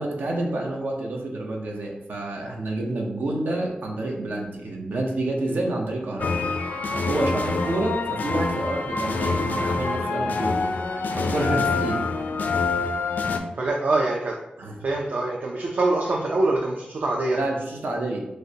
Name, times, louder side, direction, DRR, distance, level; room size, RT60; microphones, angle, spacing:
voice 1, 0.0-6.4 7.1-12.0 14.6-14.8 17.3-18.2, right 2 dB, 85° right, 0 dB, 0.8 m, -28 dB
sound 1, 6.2-13.4, left 3 dB, 65° left, 0.4 m, -26 dB
voice 2, 13.6-14.4 14.8-17.4, right 2 dB, 65° right, -1 dB, 0.5 m, -24 dB
6.2 x 2.2 x 2.8 m, 0.88 s
wide cardioid pair, 110°, 3 cm